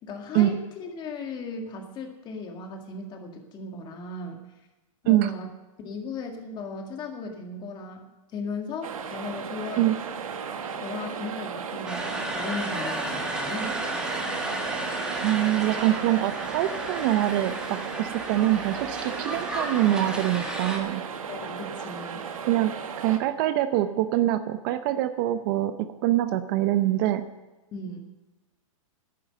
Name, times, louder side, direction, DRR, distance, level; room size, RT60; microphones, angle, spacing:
voice 1, 0.0-4.4 5.0-5.5 5.8-9.9 10.8-13.8 20.8-21.0 21.3-22.2 27.7-28.0, left 3 dB, 25° left, 3 dB, 2.0 m, -37 dB
sound 1, 8.8-23.2, right 6 dB, 85° right, 1.4 m, -35 dB
sound 2, 11.9-20.8, right 1 dB, 5° right, 1.5 m, -33 dB
voice 2, 15.1-21.0 22.5-22.7 23.0-25.7 26.0-27.2, right 14 dB, 40° right, 11 dB, 0.7 m, -24 dB
11.0 x 9.4 x 6.5 m, 1.1 s
hypercardioid pair, 140°, 17 cm